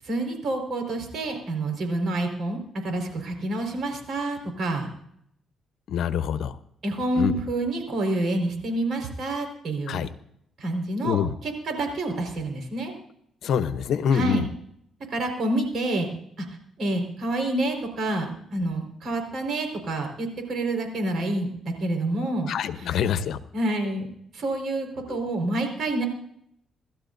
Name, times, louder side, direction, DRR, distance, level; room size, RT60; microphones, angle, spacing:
voice 1, 0.1-2.6 2.8-4.9 6.8-10.1 10.6-12.9 14.1-14.4 15.1-16.1 16.4-16.5 16.8-22.5 22.8-22.9 23.5-24.1 24.3-26.0, right 2 dB, 60° right, 4 dB, 4.8 m, -28 dB
voice 2, 5.9-6.5 7.1-7.4 9.9-10.1 11.0-11.3 13.4-14.5 22.5-23.4 25.1-25.2, left 8 dB, 75° left, 11 dB, 0.9 m, -25 dB
27.5 x 13.0 x 2.7 m, 0.72 s
cardioid pair, 90°, 0 cm